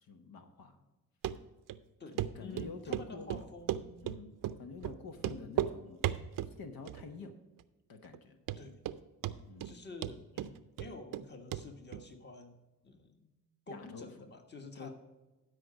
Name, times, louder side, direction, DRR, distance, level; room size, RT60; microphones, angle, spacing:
voice 1, 0.1-0.8 2.1-3.4 4.0-6.0 6.6-7.3 7.9-8.4 9.5-9.7 13.7-14.1 14.8-14.9, left 4 dB, 75° left, 6 dB, 1.1 m, -47 dB
Run, 1.2-1.4 1.7-1.8 2.2-2.3 2.6-3.1 3.3-4.2 4.4-4.6 4.8-4.9 5.2-5.7 6.0-6.5 6.9-7.3 7.6-7.7 8.1-8.2 8.5-9.0 9.2-9.7 10.0-11.2 11.5-11.6 11.9-12.0, right 11 dB, 65° right, 0.6 m, -35 dB
voice 2, 2.0-4.0 5.2-5.5 8.6-8.8 9.6-12.6 12.8-13.3 13.7-14.9, left 3 dB, 30° left, 6 dB, 1.4 m, -49 dB
12.0 x 5.1 x 5.0 m, 1.1 s
cardioid pair, 85°, 36 cm